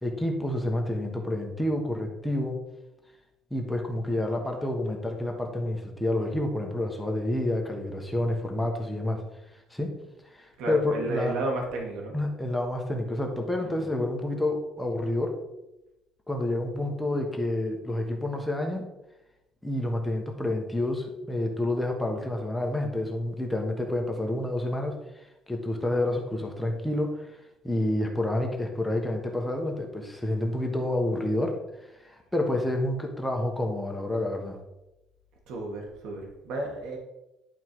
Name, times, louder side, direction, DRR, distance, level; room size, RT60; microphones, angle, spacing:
voice 1, 0.0-2.6 3.5-9.2 9.7-9.9 10.2-11.3 12.1-15.4 16.3-18.8 19.6-27.4 27.6-34.6, left 1 dB, 5° left, 2 dB, 1.2 m, -29 dB
voice 2, 10.6-12.1 13.6-13.9 35.5-37.0, right 2 dB, 75° right, 1 dB, 2.0 m, -32 dB
11.0 x 4.6 x 4.7 m, 0.94 s
cardioid pair, 145°, 0 cm